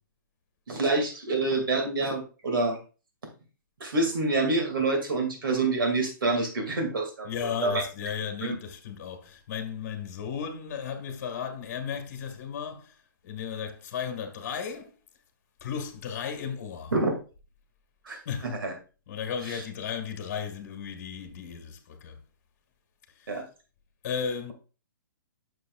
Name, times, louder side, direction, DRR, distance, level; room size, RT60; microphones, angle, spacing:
voice 1, 0.7-2.8 3.8-7.3 7.6-7.8 8.4-8.6 16.9-17.1 18.1-18.2 18.6-18.7 19.5-19.6 23.3-23.5, right 3 dB, 90° right, 2.2 m, -27 dB
voice 2, 7.2-14.9 15.6-16.9 18.2-18.5 19.1-22.2 23.1-23.4 24.0-24.5, left 7 dB, 40° left, 1.4 m, -35 dB
9.4 x 6.7 x 2.3 m
hypercardioid pair, 165°, 11 cm